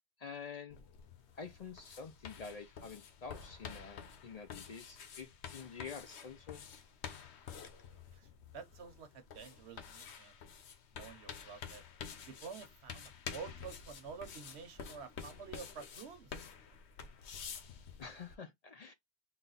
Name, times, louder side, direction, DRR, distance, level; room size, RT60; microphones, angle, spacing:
voice 1, 0.2-0.8 1.4-6.6 18.0-18.9, left 5 dB, 55° left, 0.5 m, -48 dB
sound 1, 0.7-18.3, left 7 dB, 90° left, 1.0 m, -49 dB
voice 2, 8.1-10.4 10.9-11.8 12.3-16.4, right 6 dB, 85° right, 1.2 m, -49 dB
4.0 x 2.2 x 3.9 m
omnidirectional pair, 1.1 m